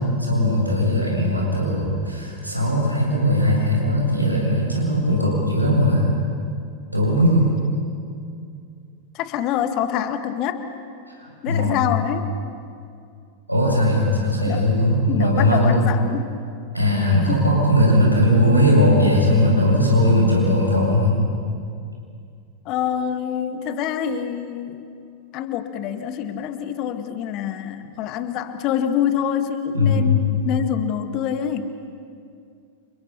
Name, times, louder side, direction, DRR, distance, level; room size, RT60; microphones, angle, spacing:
voice 1, 0.0-6.1 6.9-7.5 11.1-11.8 13.5-15.8 16.7-21.2 29.7-30.2, left 1 dB, 90° right, -3 dB, 7.8 m, -19 dB
voice 2, 9.1-10.6 11.4-12.3 14.5-14.6 15.1-16.3 17.3-17.4 22.7-24.9 25.3-31.7, left 9 dB, 40° left, 9 dB, 1.8 m, -26 dB
30.0 x 29.0 x 5.7 m, 2.4 s
figure-of-eight pair, 90°, 0 cm